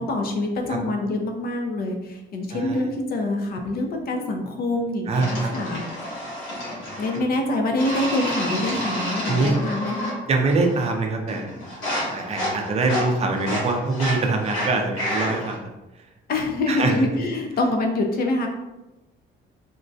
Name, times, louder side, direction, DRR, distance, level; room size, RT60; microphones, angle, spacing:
voice 1, 0.0-5.8 7.0-10.1 16.3-18.5, left 2 dB, 50° left, 3 dB, 0.5 m, -25 dB
voice 2, 2.5-2.8 5.1-5.5 9.3-9.5 10.3-11.5 12.1-15.7 16.7-16.9, right 3 dB, 30° right, 3 dB, 0.5 m, -24 dB
sound 1, 5.2-7.2 7.8-10.2 10.5-11.0 11.3-15.6, equal, 80° left, 1.1 m, -30 dB
3.6 x 2.1 x 2.6 m, 1.0 s
cardioid pair, 135°, 20 cm